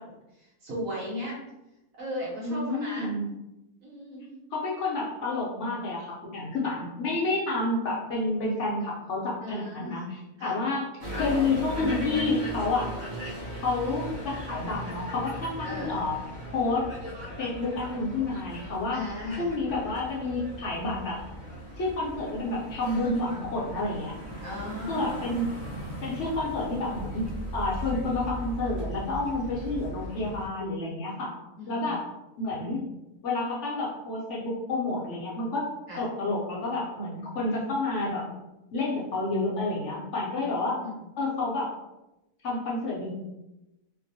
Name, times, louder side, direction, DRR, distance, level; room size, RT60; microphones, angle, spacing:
voice 1, 0.0-1.4 2.0-3.2 3.8-4.3 9.4-10.0 10.4-10.6 15.6-16.0 18.9-19.5 24.4-25.4 31.6-32.0 35.9-36.1 40.7-40.9, left 1 dB, 70° right, -4 dB, 1.2 m, -37 dB
voice 2, 2.4-3.2 4.5-10.9 11.1-13.0 13.6-16.1 16.5-16.9 17.4-19.0 19.4-21.2 21.8-24.1 24.9-25.5 26.0-31.4 31.7-32.0 32.4-32.9 33.2-35.7 36.0-38.2 38.7-40.8 41.2-41.7 42.4-43.1, left 2 dB, 65° left, -5 dB, 0.9 m, -29 dB
sound 1, 11.0-30.5, equal, 45° right, 0.7 m, -38 dB
2.8 x 2.1 x 2.6 m, 0.95 s
omnidirectional pair, 1.5 m